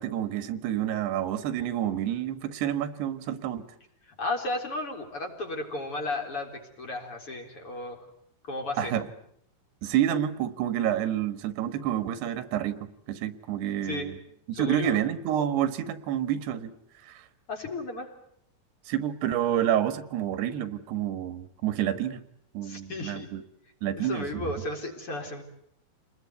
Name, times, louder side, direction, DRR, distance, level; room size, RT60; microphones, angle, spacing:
voice 1, 0.0-3.7 8.8-9.1 9.8-14.2 14.5-16.7 17.0-17.3 18.9-22.2 22.6-23.4 23.8-24.5, right 11 dB, 90° right, 12 dB, 3.5 m, -29 dB
voice 2, 4.1-8.0 8.5-8.9 13.8-14.1 14.5-15.0 17.5-18.1 22.6-23.3 24.0-25.4, left 2 dB, 35° left, 2 dB, 4.4 m, -34 dB
29.0 x 20.5 x 9.5 m, 0.73 s
omnidirectional pair, 4.6 m